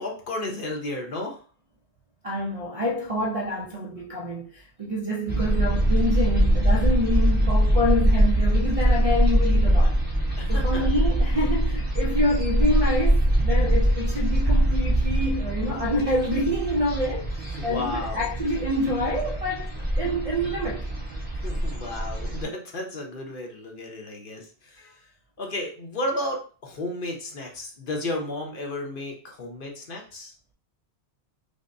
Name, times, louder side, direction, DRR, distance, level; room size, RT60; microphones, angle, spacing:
voice 1, 0.0-1.4 10.4-10.9 17.6-18.3 21.4-25.0 25.4-30.3, left 1 dB, 55° left, 0.9 m, -33 dB
voice 2, 2.2-10.0 10.5-20.9, left 1 dB, 45° right, 0.4 m, -27 dB
sound 1, 5.3-22.4, right 1 dB, 10° right, 0.8 m, -23 dB
5.2 x 2.1 x 2.6 m
omnidirectional pair, 1.1 m